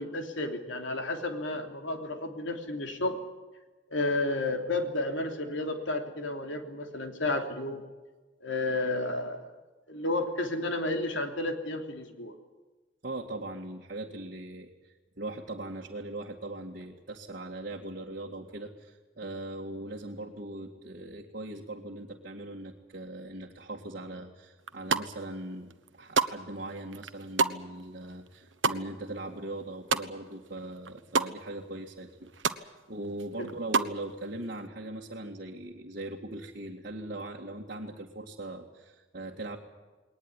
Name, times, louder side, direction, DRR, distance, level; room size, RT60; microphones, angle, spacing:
voice 1, 0.0-3.2 3.9-7.8 8.4-9.5 9.9-12.3 33.4-33.5, left 2 dB, 75° left, 5 dB, 3.2 m, -32 dB
voice 2, 13.0-32.1 32.5-39.6, right 2 dB, 50° right, -3 dB, 2.1 m, -40 dB
sound 1, 24.6-25.3 25.7-30.5 30.7-31.3 31.7-31.8 32.0-32.6 33.0-34.0, right 4 dB, 70° right, 1.1 m, -29 dB
20.5 x 19.5 x 9.8 m, 1.2 s
head